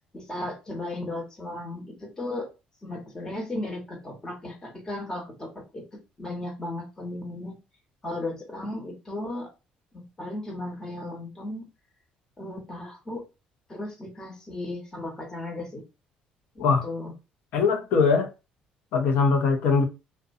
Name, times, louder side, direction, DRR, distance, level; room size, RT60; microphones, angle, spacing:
voice 1, 0.1-2.5 2.8-5.9 6.2-7.6 8.0-9.5 9.9-11.6 12.4-13.3 13.7-15.8 16.5-17.1, left 2 dB, 20° left, 1.2 m, -35 dB
voice 2, 17.5-18.3 18.9-19.8, left 5 dB, 70° left, 0.7 m, -21 dB
2.5 x 2.2 x 2.6 m
supercardioid pair, 85°, 3 cm